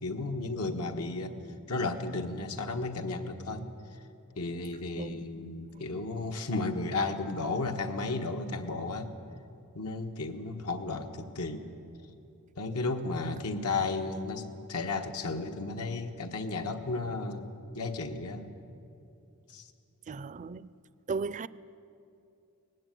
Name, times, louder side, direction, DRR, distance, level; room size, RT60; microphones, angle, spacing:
voice 1, 0.0-1.4 1.7-3.6 4.4-9.1 9.7-11.7 12.6-18.5 19.5-19.6, left 3 dB, 90° left, 1.4 m, -33 dB
voice 2, 20.1-20.7 21.1-21.5, right 4 dB, 35° right, 0.4 m, -35 dB
19.0 x 16.0 x 9.3 m
head